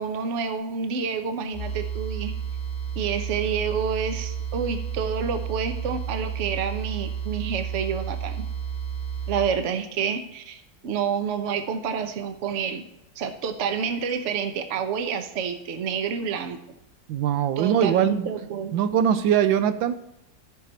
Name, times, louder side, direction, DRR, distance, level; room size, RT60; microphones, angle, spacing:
voice 1, 0.0-2.3 3.0-8.4 9.3-12.8 13.2-16.6 17.6-18.7, right 6 dB, 50° right, 8 dB, 1.0 m, -28 dB
sound 1, 1.5-9.5, right 7 dB, 60° left, 0.4 m, -31 dB
voice 2, 17.1-18.3 18.7-19.9, right 9 dB, 85° right, 11 dB, 1.4 m, -21 dB
14.0 x 5.9 x 4.3 m, 0.87 s
omnidirectional pair, 2.1 m